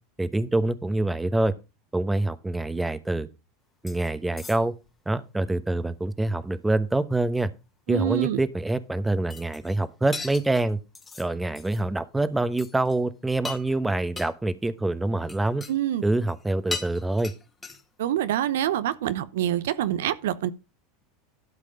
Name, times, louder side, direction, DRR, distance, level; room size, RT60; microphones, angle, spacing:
voice 1, 0.2-1.5 1.9-3.3 3.8-4.7 5.1-7.5 7.9-10.8 11.2-15.7 16.0-17.3, right 2 dB, 10° right, 1.0 m, -26 dB
sound 1, 3.9-4.1 4.4-4.9 9.3-9.9 10.1-11.3 11.6-11.8 12.1-12.3 12.6-13.0 13.3-13.8 14.2-14.3 15.2-15.7 16.0-16.4 16.7-18.0, left 4 dB, 20° left, 1.7 m, -38 dB
voice 2, 7.9-8.4 15.7-16.0 18.0-20.5, right 11 dB, 75° right, 0.7 m, -26 dB
12.0 x 5.2 x 5.1 m
hypercardioid pair, 95°, 0 cm